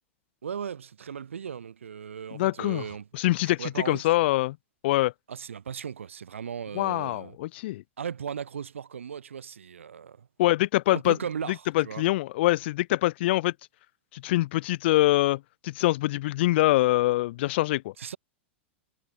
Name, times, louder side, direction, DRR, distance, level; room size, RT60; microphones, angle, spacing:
voice 1, 0.4-3.1 3.4-4.3 5.3-7.4 8.0-10.3 10.9-12.1 18.0-18.2, right 7 dB, 85° right, 0.8 m, -37 dB
voice 2, 2.3-2.8 3.1-4.6 4.8-5.1 6.7-7.8 10.4-11.2 11.7-13.5 14.1-17.9, left 17 dB, 60° left, 0.4 m, -24 dB
hypercardioid pair, 100°, 7 cm